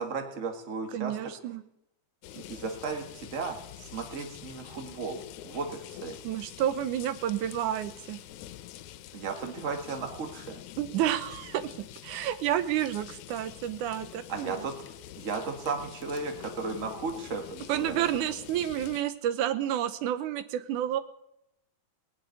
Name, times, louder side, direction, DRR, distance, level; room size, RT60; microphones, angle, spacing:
voice 1, 0.0-1.2 2.3-6.2 9.1-10.6 14.3-14.8 15.2-18.1, right 4 dB, 30° right, 4 dB, 1.6 m, -35 dB
voice 2, 0.9-1.6 6.2-8.2 10.8-11.7 12.0-14.7 17.7-21.0, right 11 dB, 90° right, 11 dB, 2.4 m, -30 dB
sound 1, 2.2-19.0, left 13 dB, 85° left, 2.1 m, -46 dB
19.0 x 6.7 x 9.4 m, 0.81 s
omnidirectional pair, 3.4 m